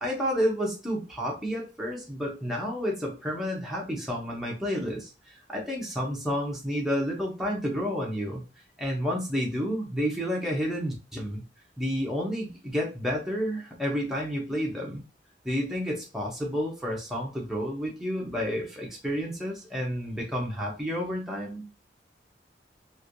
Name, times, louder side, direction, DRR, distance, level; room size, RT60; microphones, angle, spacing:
voice 1, 0.0-5.1 5.5-8.4 8.8-11.4 11.8-15.0 15.4-21.6, equal, ahead, -3 dB, 0.8 m, -30 dB
3.1 x 2.6 x 2.5 m, 0.31 s
head